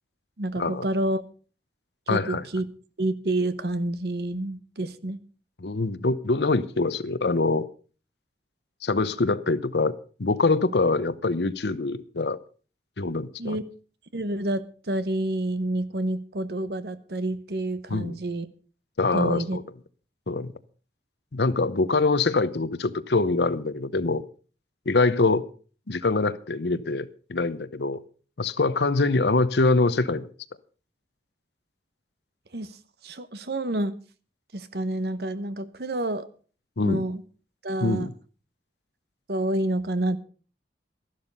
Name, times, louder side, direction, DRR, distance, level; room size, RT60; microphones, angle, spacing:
voice 1, 0.4-1.2 2.1-2.7 3.0-5.2 13.4-13.7 14.1-18.5 19.1-19.6 32.5-32.8 33.0-33.9 34.5-36.3 36.8-37.2 37.6-38.1 39.3-40.2, right 1 dB, 65° right, 13 dB, 1.0 m, -28 dB
voice 2, 2.1-2.4 5.6-7.7 8.8-9.9 10.2-12.4 13.0-13.6 17.9-18.2 19.0-19.6 20.3-20.5 21.3-24.2 24.9-25.5 25.9-28.0 28.4-30.3 36.8-37.0 37.8-38.1, left 3 dB, 75° left, 15 dB, 0.9 m, -24 dB
13.0 x 11.5 x 5.4 m, 0.39 s
head